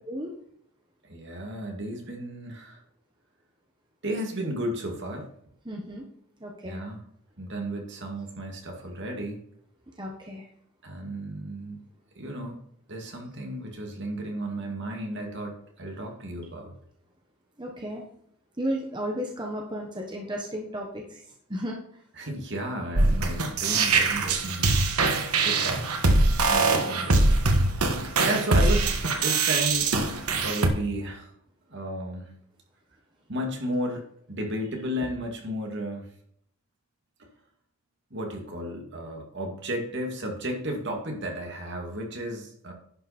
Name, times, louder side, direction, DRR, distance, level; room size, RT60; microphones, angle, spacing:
voice 1, 1.1-2.8 4.0-5.3 6.6-7.0 7.4-9.4 10.8-11.8 12.2-12.6 12.9-16.7 22.2-24.7 25.4-25.8 26.5-27.3 27.7-27.8 28.2-28.9 29.2-29.9 30.4-31.3 31.7-32.3 33.3-34.0 34.3-36.1 38.1-42.7, right 1 dB, 55° right, 1 dB, 2.3 m, -33 dB
voice 2, 5.6-6.0 6.4-6.8 10.0-10.4 17.6-18.0 18.6-21.2 21.5-21.8 26.7-26.9, equal, 20° right, 0 dB, 1.2 m, -33 dB
sound 1, 22.9-30.7, right 3 dB, 90° right, 1.5 m, -22 dB
11.0 x 6.0 x 4.3 m, 0.67 s
head